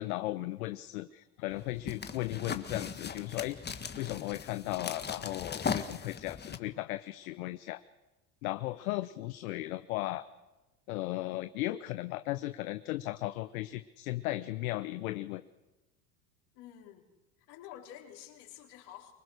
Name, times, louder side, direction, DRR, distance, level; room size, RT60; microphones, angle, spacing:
voice 1, 0.0-7.8 8.4-10.2 10.9-15.4, left 17 dB, 80° left, 12 dB, 0.9 m, -36 dB
sound 1, 1.5-6.6, left 6 dB, 25° left, 1.5 m, -38 dB
voice 2, 16.5-17.0 17.5-19.1, left 11 dB, 65° left, 1 dB, 4.4 m, -49 dB
24.5 x 20.5 x 6.5 m, 1.1 s
hypercardioid pair, 85°, 42 cm